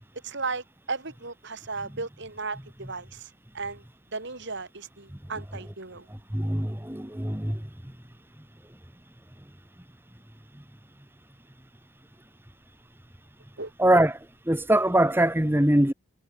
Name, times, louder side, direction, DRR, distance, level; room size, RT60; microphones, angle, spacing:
voice 1, 0.2-3.8 4.1-6.0 13.6-13.7, right 4 dB, 55° right, 3.1 m, -35 dB
voice 2, 6.3-7.6 13.8-14.2 14.5-15.9, right 1 dB, 10° right, 1.5 m, -22 dB
head